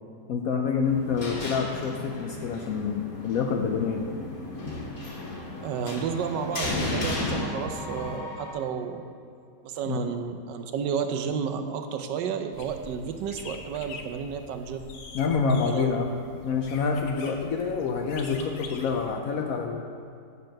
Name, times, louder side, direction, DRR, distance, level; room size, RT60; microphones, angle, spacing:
voice 1, 0.3-4.1 9.9-10.1 15.1-16.1 16.4-19.8, left 5 dB, 70° left, 3 dB, 0.8 m, -27 dB
sound 1, 0.8-8.2, left 2 dB, 55° left, 1.9 m, -34 dB
sound 2, 3.2-8.5, left 2 dB, 35° left, 1.3 m, -45 dB
voice 2, 5.6-9.0 9.6-14.9 15.6-15.9, right 7 dB, 80° right, 7 dB, 1.2 m, -31 dB
sound 3, 12.5-19.1, left 4 dB, 90° left, 1.4 m, -44 dB
8.2 x 4.4 x 6.3 m, 2.5 s
omnidirectional pair, 1.9 m